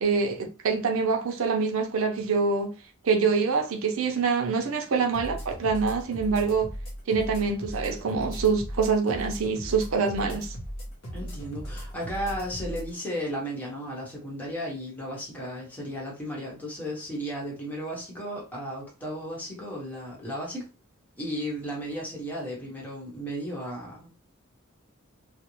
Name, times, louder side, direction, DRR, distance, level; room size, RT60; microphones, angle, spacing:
voice 1, 0.0-2.7 3.0-6.7 7.1-10.6, right 5 dB, 75° right, 0.5 m, -25 dB
sound 1, 5.1-12.9, equal, 80° left, 0.8 m, -37 dB
voice 2, 11.1-20.7 21.2-24.1, equal, 10° left, 0.9 m, -34 dB
2.5 x 2.0 x 3.0 m
head